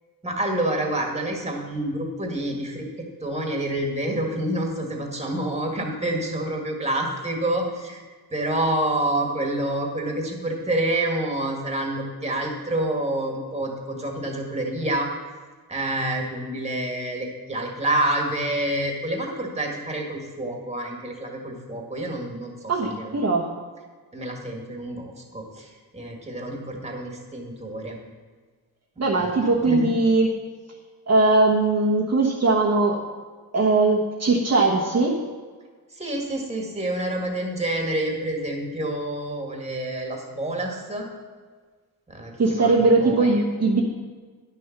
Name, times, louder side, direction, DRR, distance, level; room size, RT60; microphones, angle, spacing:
voice 1, 0.2-2.9 3.2-8.0 8.3-15.1 15.7-23.2 24.1-28.0 29.2-29.3 29.6-29.9 35.9-41.1 42.1-43.3, right 1 dB, 15° right, 0 dB, 1.9 m, -28 dB
voice 2, 22.7-23.5 29.0-30.3 31.1-33.0 33.5-35.2 42.4-43.8, right 3 dB, 40° right, -4 dB, 1.3 m, -20 dB
10.5 x 6.8 x 5.9 m, 1.5 s
wide cardioid pair, 125°, 39 cm